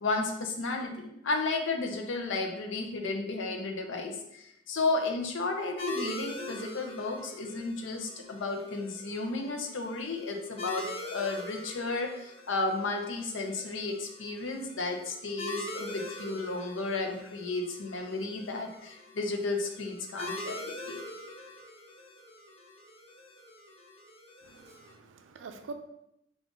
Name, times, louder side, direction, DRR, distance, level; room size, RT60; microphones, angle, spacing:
voice 1, 0.0-21.0, left 3 dB, 75° left, 3 dB, 0.6 m, -33 dB
sound 1, 5.8-24.9, left 1 dB, 30° left, 0.5 m, -43 dB
voice 2, 24.5-25.7, right 4 dB, 80° right, 7 dB, 0.4 m, -45 dB
3.6 x 2.4 x 3.8 m, 0.82 s
head